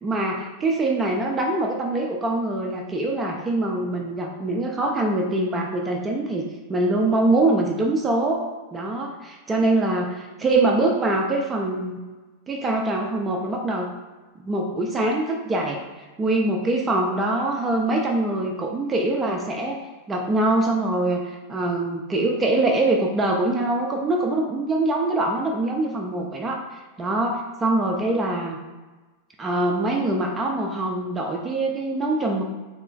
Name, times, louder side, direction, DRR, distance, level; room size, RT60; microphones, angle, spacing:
voice 1, 0.0-6.4 6.7-12.0 12.5-13.9 14.4-15.8 16.2-19.8 20.1-28.6 29.4-32.4, right 2 dB, 20° right, 0 dB, 0.5 m, -24 dB
3.2 x 2.8 x 3.8 m, 1.2 s
figure-of-eight pair, 90°, 0 cm